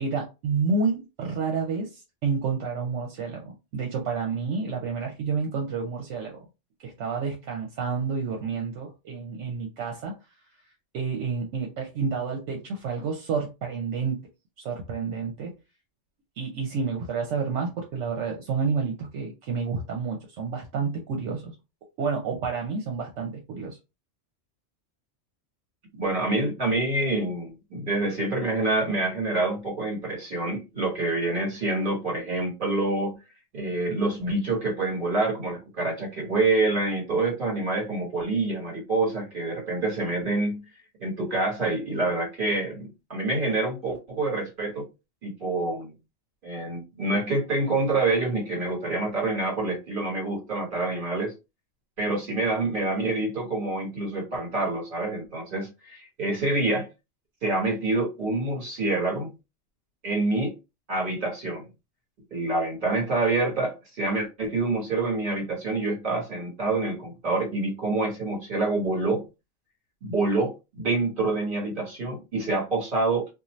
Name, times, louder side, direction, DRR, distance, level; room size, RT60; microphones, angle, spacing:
voice 1, 0.0-6.4 6.8-10.1 10.9-14.2 14.6-15.5 16.4-21.5 22.0-23.8, right 5 dB, 75° right, 0.9 m, -29 dB
voice 2, 26.0-33.2 33.5-40.6 41.0-44.9 45.2-45.9 46.4-51.3 52.0-56.9 57.4-59.3 60.0-60.5 60.9-61.7 62.3-69.2 70.0-73.3, right 2 dB, 45° right, 1.4 m, -27 dB
2.6 x 2.3 x 3.0 m
omnidirectional pair, 1.3 m